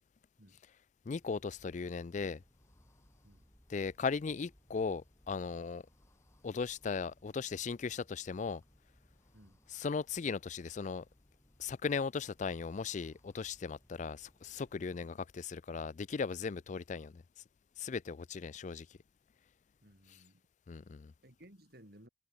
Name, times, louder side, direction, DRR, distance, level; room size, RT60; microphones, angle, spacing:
voice 1, 1.1-2.4 3.7-5.8 6.4-8.6 9.7-11.0 11.6-17.2 17.8-18.9 20.7-21.1, left 5 dB, 45° left, 0.4 m, -37 dB
sound 1, 1.2-15.0, equal, 15° left, 6.4 m, -67 dB
voice 2, 19.8-20.4 21.2-22.1, right 1 dB, 60° right, 7.8 m, -59 dB
head